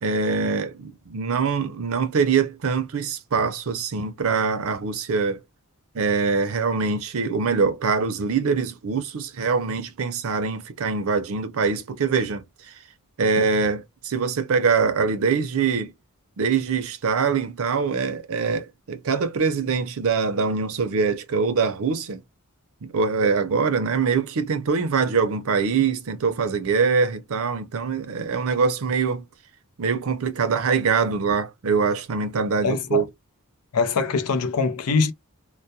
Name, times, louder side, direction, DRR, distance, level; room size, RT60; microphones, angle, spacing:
voice 1, 0.0-5.4 5.9-12.4 13.2-15.9 16.4-22.2 22.8-29.2 29.8-33.1, right 5 dB, 70° right, 0.5 m, -23 dB
voice 2, 32.6-33.0 33.7-35.1, left 4 dB, 85° left, 0.5 m, -23 dB
2.2 x 2.1 x 2.6 m
head